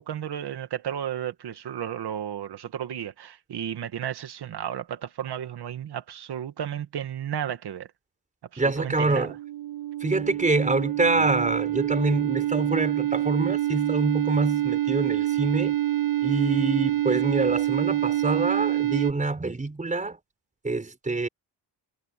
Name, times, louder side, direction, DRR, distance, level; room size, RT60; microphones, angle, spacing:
voice 1, 0.0-7.9 8.5-9.3, right 9 dB, 65° right, 2.0 m, -33 dB
voice 2, 8.6-9.3 10.0-15.8 16.2-20.2 20.6-21.3, right 3 dB, 20° right, 5.2 m, -26 dB
sound 1, 8.9-19.1, right 13 dB, 50° right, 1.7 m, -26 dB
wide cardioid pair, 175°, 42 cm